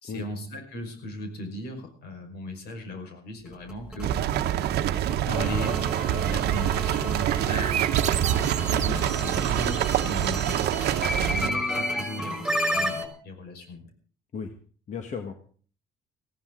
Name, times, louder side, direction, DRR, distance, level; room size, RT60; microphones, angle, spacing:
voice 1, 0.0-4.2 5.2-8.4 8.9-13.9, equal, 75° left, 5 dB, 5.5 m, -37 dB
sound 1, 3.5-13.1, equal, ahead, 5.0 m, -32 dB
sound 2, 4.0-11.5, right 11 dB, 75° right, 1.0 m, -26 dB
sound 3, 7.2-10.0, right 10 dB, 45° right, 0.7 m, -33 dB
voice 2, 8.7-9.4 14.3-14.5 14.9-15.3, left 6 dB, 45° left, 5 dB, 1.7 m, -35 dB
19.5 x 15.0 x 3.9 m, 0.43 s
cardioid pair, 110°, 17 cm